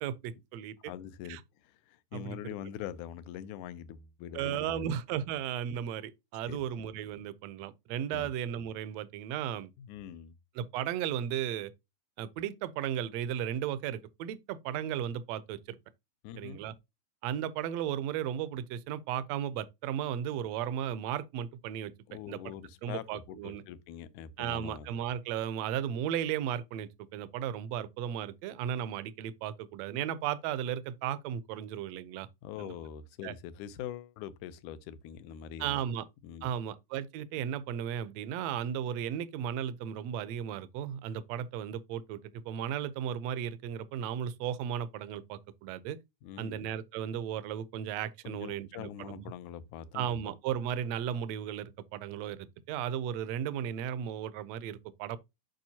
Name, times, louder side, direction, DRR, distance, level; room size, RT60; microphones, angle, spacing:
voice 1, 0.0-0.8 1.3-1.4 2.1-2.5 4.3-9.7 10.5-11.7 12.2-15.8 16.4-16.8 17.2-21.9 22.3-22.4 22.8-23.6 24.4-32.3 32.6-32.7 33.2-33.3 35.6-36.1 36.4-46.0 46.4-49.3 49.9-55.2, right 9 dB, 75° right, 1.6 m, -35 dB
voice 2, 0.8-5.0 6.5-6.6 8.1-8.3 9.8-10.3 16.2-16.6 22.1-24.9 32.4-35.8 36.2-36.5 46.2-46.6 48.2-50.2, left 10 dB, 80° left, 2.1 m, -43 dB
9.0 x 5.2 x 2.8 m
omnidirectional pair, 3.6 m